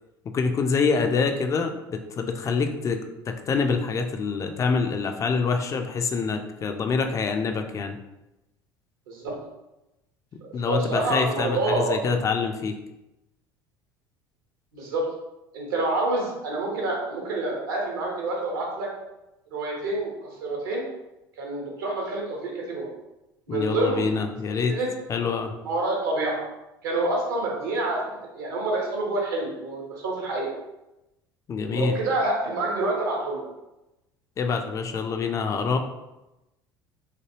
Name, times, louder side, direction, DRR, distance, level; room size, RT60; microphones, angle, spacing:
voice 1, 0.3-3.0 3.3-8.0 10.5-12.8 23.5-24.8 25.1-25.5 31.5-31.9 34.4-35.8, left 5 dB, 25° left, 5 dB, 0.3 m, -26 dB
voice 2, 10.4-12.0 14.7-15.1 15.5-18.9 19.5-20.8 21.4-22.9 23.5-24.1 24.7-24.9 25.6-26.4 26.8-28.0 28.3-30.5 31.7-33.5, right 2 dB, 65° right, -1 dB, 0.8 m, -27 dB
3.2 x 2.2 x 3.0 m, 0.96 s
figure-of-eight pair, 65°, 12 cm